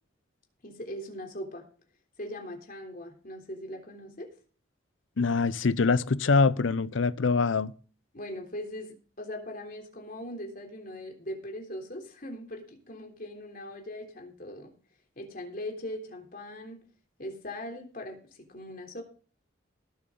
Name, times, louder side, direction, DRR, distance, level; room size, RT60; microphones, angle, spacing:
voice 1, 0.6-1.7 2.2-4.3 8.1-14.7 15.2-16.8 17.2-19.0, left 1 dB, 45° left, 3.5 m, -40 dB
voice 2, 5.2-7.7, left 4 dB, 75° left, 0.6 m, -24 dB
19.5 x 7.8 x 3.9 m
head